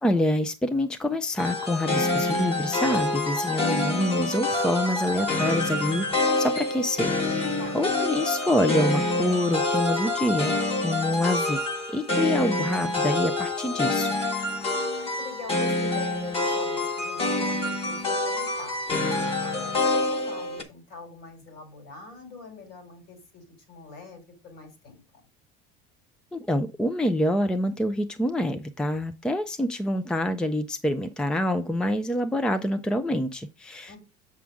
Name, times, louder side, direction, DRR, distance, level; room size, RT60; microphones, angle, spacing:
voice 1, 0.0-10.6 10.8-11.6 11.9-14.1 26.3-34.0, left 1 dB, 5° left, 0.5 m, -26 dB
sound 1, 1.4-20.6, left 2 dB, 25° left, 1.5 m, -27 dB
voice 2, 7.6-8.0 14.6-18.8 19.4-25.0 33.9-34.0, left 4 dB, 60° left, 4.9 m, -44 dB
7.3 x 6.2 x 3.5 m
cardioid pair, 145°, 21 cm